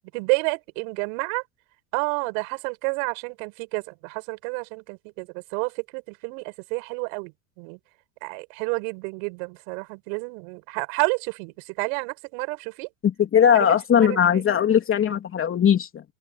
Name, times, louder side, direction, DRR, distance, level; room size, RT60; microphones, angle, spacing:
voice 1, 0.1-1.4 1.9-7.8 8.2-12.9 13.5-14.4, right 38 dB, 60° right, 7.6 m, -30 dB
voice 2, 13.0-16.0, left 8 dB, 30° left, 3.2 m, -19 dB
open air
hypercardioid pair, 105°, 43 cm